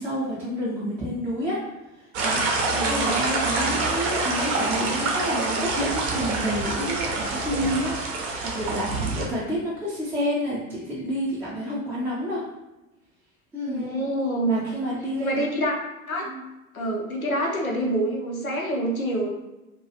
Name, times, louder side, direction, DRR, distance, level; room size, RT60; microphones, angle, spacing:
voice 1, 0.0-1.6 2.2-12.5 13.5-13.9 14.5-15.4 16.2-16.4, equal, 5° right, -9 dB, 0.5 m, -29 dB
sound 1, 2.1-9.3, right 3 dB, 50° right, 0.6 m, -26 dB
voice 2, 2.8-3.2 13.6-14.6 15.2-15.7 16.1-16.2 16.7-19.3, right 1 dB, 90° left, -1 dB, 0.6 m, -26 dB
2.3 x 2.2 x 2.8 m, 1.0 s
figure-of-eight pair, 80°, 41 cm